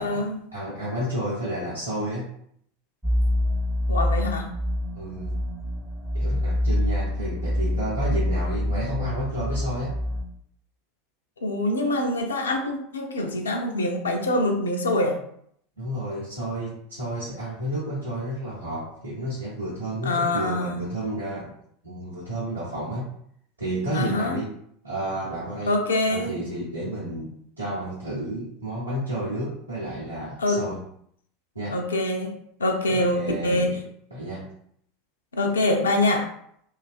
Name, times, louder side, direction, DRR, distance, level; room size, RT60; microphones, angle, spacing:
voice 1, 0.0-0.4 3.9-4.5 11.4-15.2 20.0-20.8 23.9-24.3 25.7-26.4 30.4-30.6 31.7-32.3 32.6-33.8 35.3-36.3, left 1 dB, 75° left, 3 dB, 0.3 m, -24 dB
voice 2, 0.5-2.3 4.9-5.4 6.1-10.0 15.8-21.5 21.8-23.1 23.6-24.5 24.8-25.7 26.0-30.8 31.5-31.8 32.9-33.8 34.1-34.5, right 1 dB, 85° right, -9 dB, 0.6 m, -31 dB
sound 1, 3.0-10.2, left 1 dB, 5° right, 0.4 m, -26 dB
2.4 x 2.2 x 2.3 m, 0.67 s
figure-of-eight pair, 80°, 0 cm